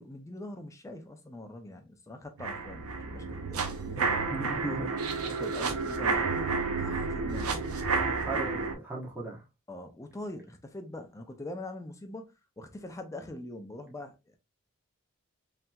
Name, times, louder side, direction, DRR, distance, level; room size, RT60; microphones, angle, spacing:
voice 1, 0.0-3.6 3.9-4.2 4.7-4.9 5.3-7.5 9.7-14.4, left 1 dB, 15° left, 0.4 m, -43 dB
sound 1, 2.4-8.7, right 4 dB, 85° right, 0.6 m, -31 dB
voice 2, 4.3-4.9 8.0-9.4, right 2 dB, 10° right, 0.9 m, -37 dB
3.3 x 2.8 x 2.2 m
head